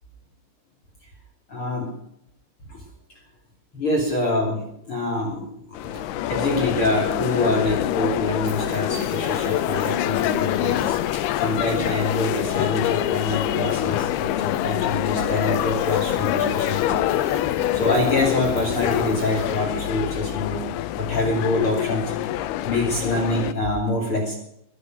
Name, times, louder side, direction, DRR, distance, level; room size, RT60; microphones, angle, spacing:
voice 1, 1.5-1.9 2.7-2.8 3.7-6.0 6.3-17.0 17.7-20.6 20.9-22.1 22.6-24.3, left 2 dB, 35° left, 0 dB, 3.1 m, -25 dB
sound 1, 5.7-23.5, left 13 dB, 85° left, 2.3 m, -25 dB
sound 2, 7.5-20.3, right 2 dB, 80° right, 10.5 m, -43 dB
22.5 x 8.0 x 6.3 m, 0.74 s
omnidirectional pair, 5.4 m